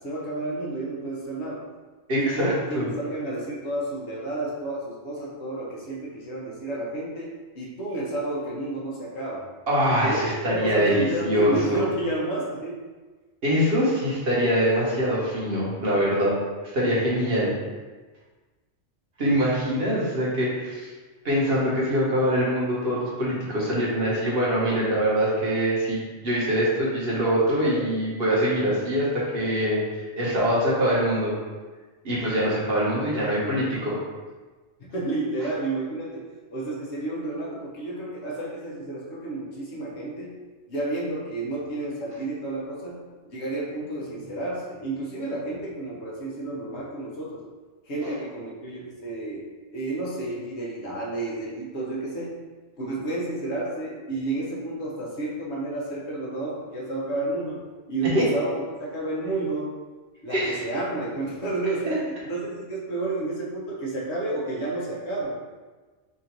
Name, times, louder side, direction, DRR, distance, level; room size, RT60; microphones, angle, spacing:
voice 1, 0.0-1.6 2.2-9.4 10.0-12.8 34.8-36.2 36.5-40.3 40.7-43.0 43.2-47.4 47.8-49.4 49.7-52.4 52.8-57.6 57.9-59.7 60.2-65.4, right 2 dB, 70° left, -4 dB, 1.2 m, -31 dB
voice 2, 2.1-2.9 9.7-11.9 13.4-16.3 16.7-17.6 19.2-20.9 21.2-31.3 32.0-34.0 48.0-48.2 58.1-58.3 60.3-60.7 61.9-62.0, equal, 55° right, -6 dB, 1.3 m, -24 dB
3.7 x 2.6 x 4.4 m, 1.3 s
omnidirectional pair, 1.2 m